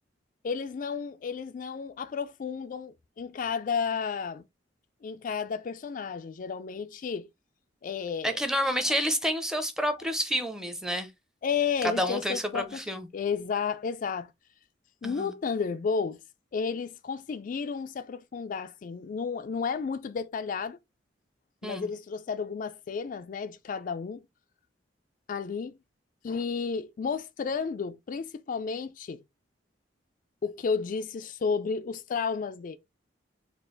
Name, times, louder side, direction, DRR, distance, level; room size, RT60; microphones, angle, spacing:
voice 1, 0.4-4.4 5.0-7.3 7.8-8.4 11.4-12.8 13.1-14.3 15.0-16.2 16.5-20.8 21.6-24.2 25.3-25.7 26.2-29.2 30.4-32.8, left 5 dB, 45° left, 0.3 m, -32 dB
voice 2, 8.2-11.1 11.8-13.1 15.0-15.3 21.6-21.9, equal, 5° right, 0.6 m, -29 dB
4.3 x 2.4 x 3.8 m
head